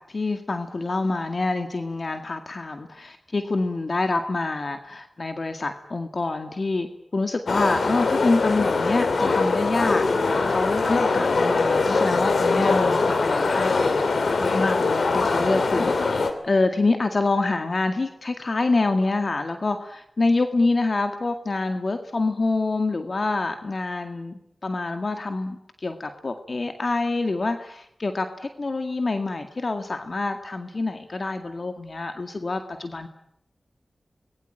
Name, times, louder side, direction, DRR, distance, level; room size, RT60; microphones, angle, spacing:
voice 1, 0.0-6.9 7.1-10.1 10.5-13.8 14.4-33.1, left 3 dB, 60° left, 7 dB, 2.1 m, -26 dB
sound 1, 7.5-16.3, left 3 dB, 80° left, 2.9 m, -22 dB
25.5 x 21.0 x 9.0 m, 0.74 s
cardioid pair, 45°, 0 cm